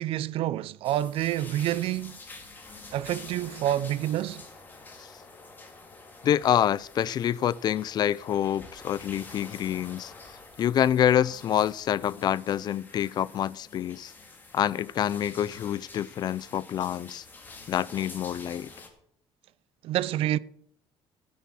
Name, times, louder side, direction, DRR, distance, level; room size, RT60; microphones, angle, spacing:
voice 1, 0.0-2.2 2.9-4.5 19.8-20.4, right 13 dB, 65° right, 0.5 m, -28 dB
sound 1, 0.8-18.9, left 3 dB, 20° left, 2.3 m, -48 dB
voice 2, 6.2-10.1 10.6-14.1 14.5-17.2 17.7-18.7, left 10 dB, 40° left, 0.4 m, -27 dB
16.0 x 6.9 x 6.1 m
cardioid pair, 155°, 10 cm